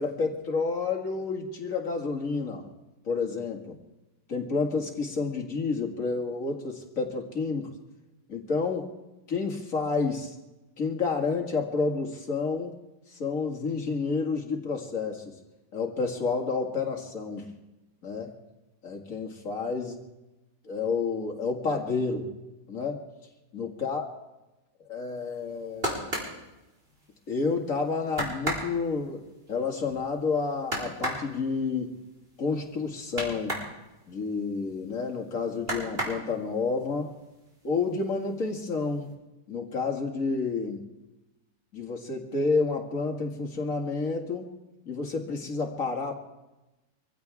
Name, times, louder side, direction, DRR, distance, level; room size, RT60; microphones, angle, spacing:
voice 1, 0.0-2.7 3.1-3.7 4.3-7.7 8.3-8.9 9.3-10.3 10.8-12.7 13.1-15.3 15.7-17.4 18.0-18.3 18.8-20.0 20.6-22.3 22.7-23.0 23.5-24.1 24.9-26.1 27.3-29.2 29.5-32.0 32.4-33.6 34.1-37.1 37.6-39.1 39.5-40.8 41.7-44.5 44.9-46.1, left 4 dB, 50° left, 2 dB, 2.5 m, -30 dB
sound 1, 25.4-27.4 27.7-27.8 28.1-33.7 34.1-35.2 35.6-36.7 37.1-37.7 38.0-38.7 39.0-39.1, right 1 dB, 35° right, 4.2 m, -34 dB
24.5 x 15.5 x 3.6 m, 1.0 s
omnidirectional pair, 1.8 m